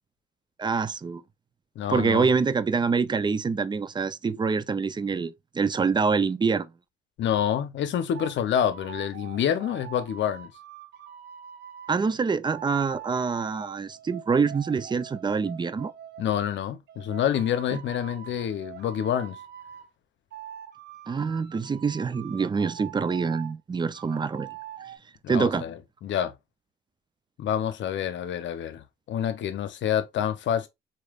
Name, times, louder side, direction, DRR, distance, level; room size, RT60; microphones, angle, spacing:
voice 1, 0.6-1.2 1.9-6.7 11.9-15.9 17.7-17.8 21.1-24.5 25.3-25.6, right 5 dB, 25° right, 0.4 m, -26 dB
voice 2, 1.8-2.3 7.2-10.5 16.2-19.4 25.2-26.3 27.4-30.7, left 9 dB, 70° left, 0.7 m, -27 dB
sound 1, 8.1-8.4 8.7-12.0 12.5-16.2 16.9-19.9 20.3-23.5 23.9-25.0, right 10 dB, 55° right, 0.8 m, -43 dB
4.2 x 3.2 x 2.4 m
cardioid pair, 90°, 20 cm